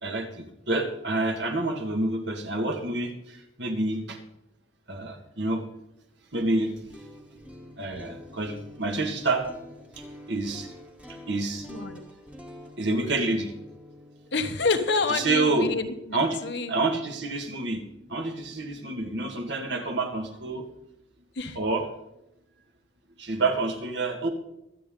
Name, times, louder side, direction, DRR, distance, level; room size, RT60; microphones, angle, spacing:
voice 1, 0.0-4.2 4.9-5.6 6.3-7.4 7.8-9.5 10.0-10.7 11.1-11.7 12.8-13.5 15.1-15.7 16.1-16.4 16.7-20.7 21.5-21.9 23.2-24.3, right 2 dB, 60° right, 4 dB, 1.8 m, -28 dB
sound 1, 6.8-16.7, left 1 dB, 5° right, 1.4 m, -47 dB
voice 2, 11.7-12.0 14.3-16.7 21.3-21.6, left 4 dB, 60° left, 7 dB, 1.2 m, -28 dB
23.0 x 8.6 x 3.8 m, 0.87 s
head